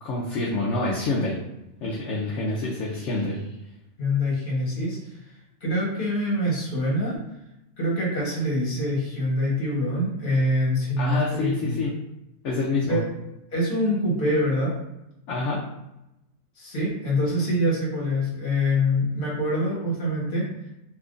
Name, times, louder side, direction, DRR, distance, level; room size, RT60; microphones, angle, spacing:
voice 1, 0.0-1.4 1.8-3.4 11.0-11.9 12.4-13.0 15.3-15.6, left 3 dB, 65° left, -4 dB, 0.9 m, -27 dB
voice 2, 2.6-3.2 4.0-7.2 7.8-11.8 12.9-13.0 13.5-14.7 16.5-20.7, left 1 dB, 40° left, -5 dB, 1.3 m, -25 dB
3.4 x 2.9 x 2.5 m, 0.90 s
omnidirectional pair, 1.4 m